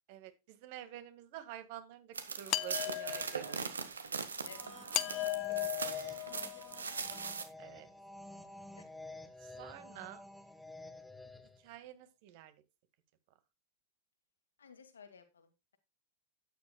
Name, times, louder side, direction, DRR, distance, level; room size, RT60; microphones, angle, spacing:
voice 1, 0.1-4.0 7.6-7.9 9.4-10.2 11.6-12.5, right 12 dB, 50° right, 11 dB, 1.9 m, -49 dB
sound 1, 2.1-7.4, right 5 dB, 75° right, 1.7 m, -40 dB
sound 2, 2.5-3.6 4.9-6.8, left 18 dB, 40° left, 0.7 m, -37 dB
sound 3, 4.3-11.7, left 2 dB, ahead, 1.3 m, -51 dB
voice 2, 5.1-7.3 8.8-8.9 14.6-15.8, left 6 dB, 70° left, 8 dB, 2.3 m, -57 dB
12.5 x 10.0 x 2.3 m, 0.25 s
figure-of-eight pair, 90°, 0 cm